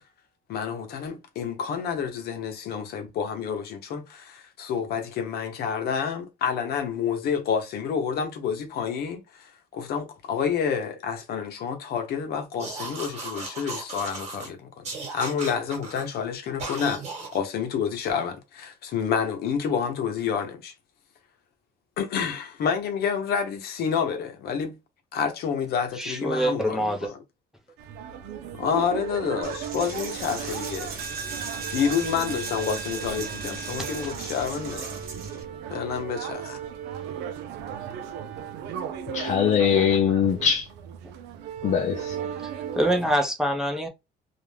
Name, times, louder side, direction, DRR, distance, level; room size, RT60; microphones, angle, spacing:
voice 1, 0.5-17.0 17.3-20.7 22.0-24.8 25.1-27.2 28.6-31.0 31.7-34.9 35.7-36.6, left 7 dB, 65° left, 0.8 m, -29 dB
sound 1, 12.6-14.5 14.8-16.1 16.6-17.4, right 3 dB, 40° right, 1.2 m, -36 dB
voice 2, 26.0-27.1 33.8-33.9 42.4-43.9, equal, 5° right, 0.6 m, -25 dB
sound 2, 27.8-43.1, right 9 dB, 80° right, 0.5 m, -36 dB
Coin (dropping), 29.4-35.4, right 4 dB, 65° right, 0.9 m, -36 dB
voice 3, 39.1-40.7 41.6-42.2, left 7 dB, 45° left, 0.4 m, -22 dB
2.5 x 2.1 x 3.2 m
cardioid pair, 110°, 17 cm